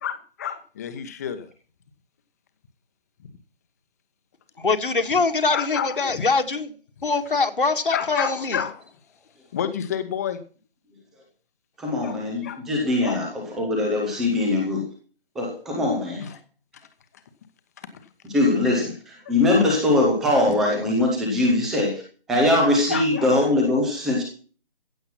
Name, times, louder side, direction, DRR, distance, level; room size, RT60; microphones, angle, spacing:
voice 1, 0.0-1.5 5.5-6.2 7.9-8.8 9.5-10.4 12.0-12.6 13.0-13.2 16.2-16.3 19.3-19.4 22.9-23.3, left 9 dB, 15° left, 1.1 m, -29 dB
voice 2, 4.6-6.7 7.0-8.6, left 4 dB, 65° left, 1.9 m, -23 dB
voice 3, 11.8-14.8 15.3-16.2 18.2-18.9 19.3-22.0 22.3-24.2, left 2 dB, ahead, 0.6 m, -21 dB
15.5 x 7.9 x 5.8 m
figure-of-eight pair, 155°, 29 cm